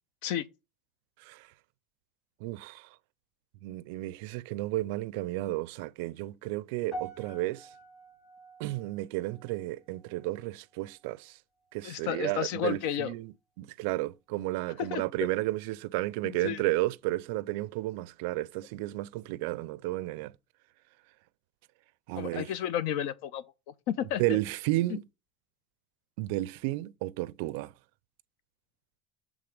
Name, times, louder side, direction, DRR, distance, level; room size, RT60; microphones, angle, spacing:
voice 1, 2.4-2.9 3.6-7.7 8.6-11.4 11.7-20.3 22.1-22.5 24.2-25.0 26.2-27.7, right 18 dB, 75° right, 0.4 m, -32 dB
sound 1, 6.9-11.3 11.6-12.0 12.6-12.7, right 1 dB, 35° left, 2.1 m, -47 dB
voice 2, 11.8-13.1 14.8-15.1 16.2-16.6 22.2-23.4 23.9-24.4 24.9-25.0, left 10 dB, 70° left, 0.7 m, -32 dB
7.8 x 3.6 x 4.8 m
cardioid pair, 150°, 0 cm